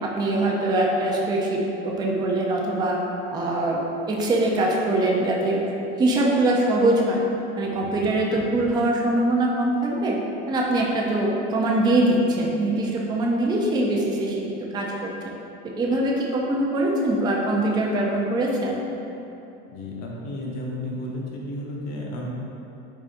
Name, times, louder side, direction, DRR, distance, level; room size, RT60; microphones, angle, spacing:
voice 1, 0.0-3.0 3.3-3.8 4.1-5.7 6.0-7.2 7.6-10.2 10.5-14.3 14.7-15.1 15.8-18.8, right 1 dB, 15° right, -2 dB, 0.3 m, -23 dB
voice 2, 7.8-8.1 19.7-22.3, left 1 dB, 50° left, -2 dB, 0.8 m, -33 dB
3.9 x 3.6 x 2.5 m, 2.8 s
supercardioid pair, 125°, 33 cm